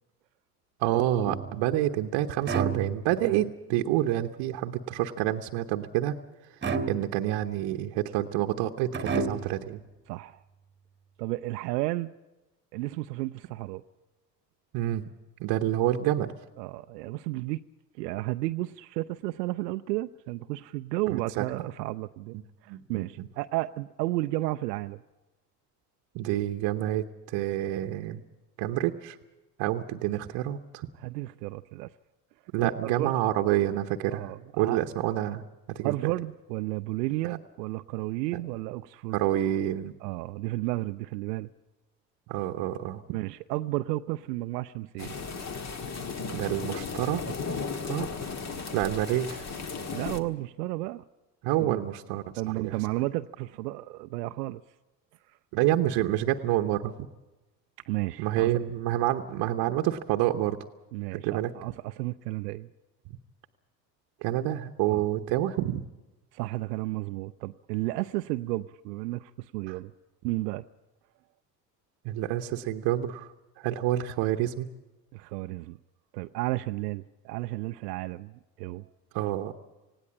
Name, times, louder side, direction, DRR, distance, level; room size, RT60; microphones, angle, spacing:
voice 1, 0.8-6.1 6.5-6.6 6.9-9.8 14.7-15.0 15.4-16.3 21.1-21.4 22.7-23.3 26.1-28.2 28.6-29.2 29.6-30.9 32.5-35.4 35.7-35.9 37.2-37.4 38.3-38.4 39.1-39.9 42.3-43.0 46.3-47.2 47.9-48.1 48.7-49.5 51.4-52.8 55.5-56.9 58.2-60.6 61.1-61.5 64.2-65.9 69.7-69.8 72.0-74.7 79.1-79.5, right 13 dB, 55° right, 5 dB, 1.0 m, -28 dB
sound 1, 1.2-1.8 2.4-3.4 6.6-7.4 8.9-9.7, right 4 dB, 20° right, 1.5 m, -31 dB
voice 2, 10.1-10.4 11.2-12.1 12.7-13.8 16.6-17.7 17.9-22.4 22.6-25.0 30.9-31.9 32.6-33.1 34.1-34.8 35.8-39.2 40.0-41.5 43.1-45.1 49.9-51.0 51.6-51.8 52.4-54.6 55.3-55.4 57.9-58.6 60.9-62.7 64.9-65.0 66.3-69.9 70.2-70.6 75.1-75.8 76.1-78.9, right 18 dB, 75° right, 10 dB, 0.6 m, -33 dB
sound 2, 45.0-50.2, left 5 dB, 30° left, 1.6 m, -35 dB
19.0 x 16.5 x 8.6 m, 1.1 s
hypercardioid pair, 65°, 49 cm